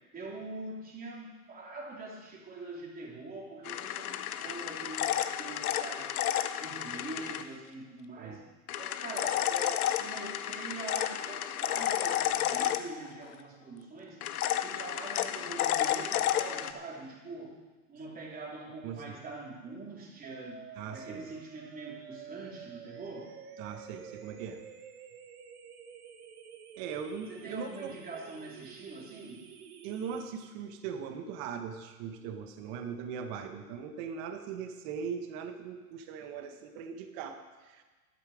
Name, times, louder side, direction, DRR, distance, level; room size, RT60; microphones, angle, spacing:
voice 1, 0.1-6.1 6.6-8.4 8.8-14.2 14.6-23.3 27.3-29.5, right 2 dB, 20° right, -2 dB, 3.2 m, -44 dB
sound 1, 3.6-7.4 8.7-13.3 14.2-16.7, left 11 dB, 75° left, 0.9 m, -31 dB
voice 2, 18.8-19.1 20.8-21.2 23.6-24.6 26.8-27.9 29.8-37.8, right 7 dB, 45° right, 6 dB, 1.5 m, -40 dB
sound 2, 20.2-30.2, right 7 dB, 80° right, 1.7 m, -49 dB
12.5 x 11.0 x 5.0 m, 1.3 s
hypercardioid pair, 130°, 44 cm